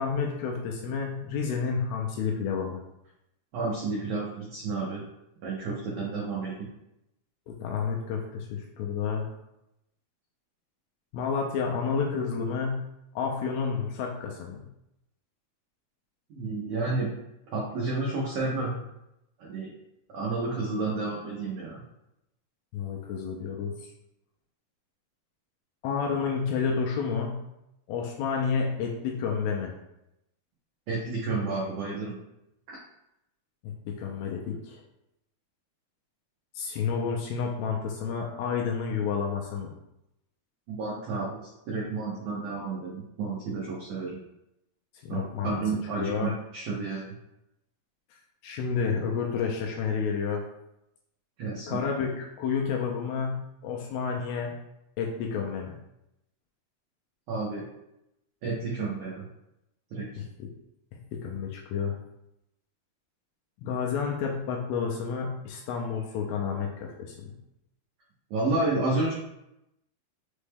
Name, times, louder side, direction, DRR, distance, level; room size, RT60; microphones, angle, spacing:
voice 1, 0.0-2.8 7.5-9.3 11.1-12.9 13.2-14.6 22.7-23.9 25.8-27.4 27.9-29.7 33.6-34.8 36.6-39.7 45.0-45.6 46.0-46.3 48.4-50.4 51.7-54.5 55.0-55.8 60.4-60.5 61.1-62.0 63.6-67.3, left 6 dB, 80° left, 0 dB, 2.2 m, -30 dB
voice 2, 3.5-5.0 5.4-6.7 16.3-17.1 17.5-18.8 19.4-19.7 20.1-21.8 30.9-32.2 32.7-32.8 40.7-44.1 45.1-47.1 51.4-51.8 57.3-57.6 58.4-59.3 59.9-60.2 68.3-69.1, right 3 dB, 85° right, -4 dB, 1.7 m, -31 dB
6.1 x 2.1 x 3.3 m, 0.86 s
omnidirectional pair, 4.6 m